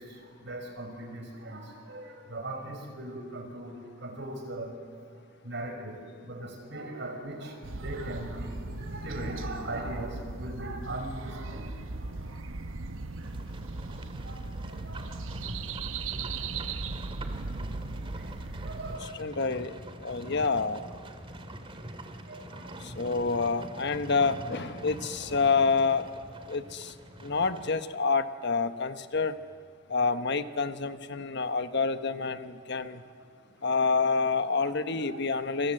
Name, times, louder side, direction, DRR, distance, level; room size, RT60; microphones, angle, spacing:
voice 1, 0.0-4.7 5.4-12.3 13.8-13.9 14.2-15.2 16.0-16.3 18.2-18.3 18.6-19.2 21.7-21.8 22.3-23.1 35.0-35.2, right 1 dB, 60° right, 4 dB, 5.6 m, -40 dB
sound 1, 7.6-19.0, right 3 dB, 75° right, 1.0 m, -38 dB
Livestock farm animals working animals, 13.2-27.8, right 1 dB, 25° right, 2.1 m, -44 dB
voice 2, 19.0-20.9 22.8-26.1 26.5-26.9 27.2-29.4 29.9-33.0 33.6-35.7, left 4 dB, 60° left, 10 dB, 1.2 m, -28 dB
28.0 x 26.0 x 7.8 m, 2.1 s
head